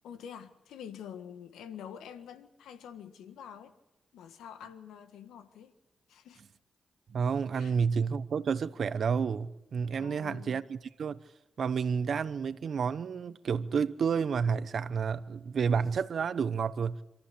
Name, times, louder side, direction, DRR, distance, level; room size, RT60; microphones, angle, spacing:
voice 1, 0.0-3.7 4.1-5.7 6.1-6.4 7.6-7.7 10.0-10.6, left 8 dB, 90° left, 1.6 m, -46 dB
voice 2, 7.1-11.2 11.6-17.0, right 6 dB, 70° right, 0.9 m, -30 dB
26.5 x 14.0 x 8.6 m
supercardioid pair, 45°, 0 cm